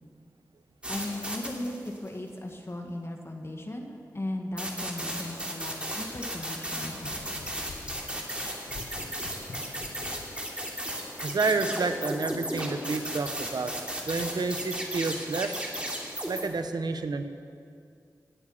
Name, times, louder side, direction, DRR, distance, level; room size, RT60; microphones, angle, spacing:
sound 1, 0.8-2.1 4.6-16.4, equal, 15° right, 2.8 m, -35 dB
voice 1, 0.9-7.6, left 1 dB, 35° left, 2 dB, 1.7 m, -37 dB
sound 2, 6.2-10.4, left 3 dB, 90° left, 1.4 m, -47 dB
voice 2, 11.2-13.7 14.1-15.7 16.3-17.2, right 3 dB, 75° right, 8 dB, 1.0 m, -29 dB
18.0 x 9.8 x 7.2 m, 2.4 s
cardioid pair, 50°, 7 cm